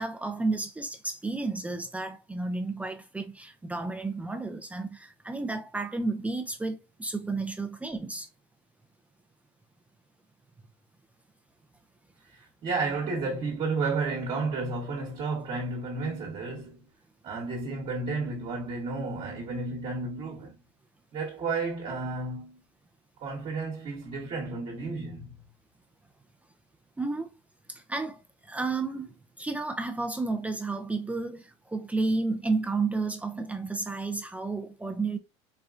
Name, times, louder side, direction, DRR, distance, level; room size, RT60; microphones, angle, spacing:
voice 1, 0.0-8.3 27.0-27.3 27.7-35.2, right 3 dB, 10° right, 0.5 m, -32 dB
voice 2, 12.3-16.8 17.2-20.6 21.1-22.6 23.2-25.4, right 3 dB, 45° right, 1.2 m, -32 dB
4.2 x 2.2 x 2.4 m
supercardioid pair, 105°, 15 cm